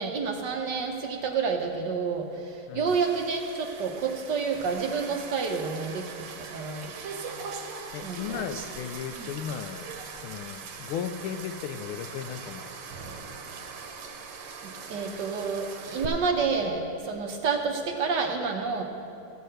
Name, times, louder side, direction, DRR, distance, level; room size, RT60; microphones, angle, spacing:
voice 1, 0.0-6.9 8.0-8.2 8.5-8.6 9.2-9.3 14.6-18.8, right 5 dB, 65° right, 3 dB, 1.3 m, -29 dB
sound 1, 2.9-16.1, right 5 dB, 90° right, 1.8 m, -41 dB
voice 2, 7.9-12.7, left 8 dB, 80° left, 10 dB, 1.4 m, -36 dB
14.5 x 5.6 x 7.7 m, 2.6 s
omnidirectional pair, 2.3 m